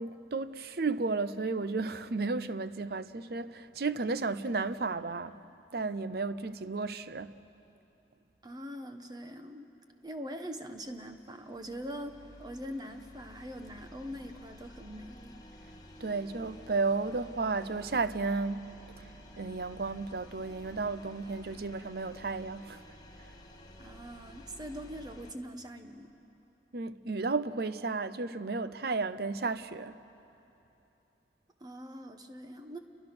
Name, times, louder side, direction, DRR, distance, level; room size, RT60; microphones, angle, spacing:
voice 1, 0.0-5.4 5.7-7.4 16.0-18.7 19.0-19.1 19.4-22.8 23.2-23.3 26.7-30.0, right 3 dB, 60° right, 0.7 m, -33 dB
voice 2, 8.4-9.7 10.0-15.4 23.8-26.1 31.6-32.8, equal, 25° right, 1.2 m, -43 dB
sound 1, 10.4-25.3, left 1 dB, 25° left, 1.4 m, -52 dB
29.0 x 23.0 x 6.1 m
head